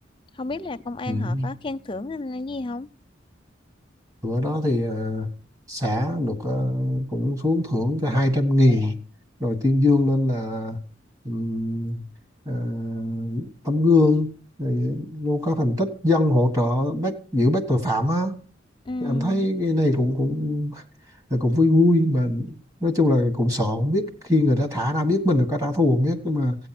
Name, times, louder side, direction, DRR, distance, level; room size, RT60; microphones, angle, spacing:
voice 1, 0.3-2.9 18.9-19.5, left 2 dB, 25° left, 0.5 m, -32 dB
voice 2, 1.1-1.5 4.2-5.3 5.7-8.9 9.4-10.8 11.2-12.0 12.4-14.3 14.6-18.4 19.0-20.8 21.3-22.5 22.8-26.7, left 1 dB, 15° right, 1.5 m, -22 dB
15.5 x 9.0 x 6.0 m
head